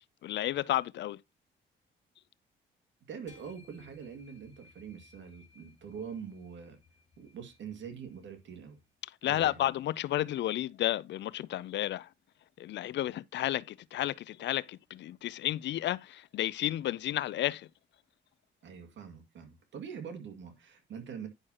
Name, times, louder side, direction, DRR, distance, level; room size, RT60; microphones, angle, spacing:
voice 1, 0.2-1.2 9.2-12.1 12.6-17.7, left 13 dB, 65° left, 0.4 m, -32 dB
voice 2, 3.1-6.8 7.2-8.8 9.2-9.6 18.6-21.3, right 7 dB, 70° right, 2.2 m, -44 dB
sound 1, 3.3-8.9, left 4 dB, 35° left, 3.0 m, -62 dB
10.5 x 6.2 x 2.9 m
cardioid pair, 90°, 20 cm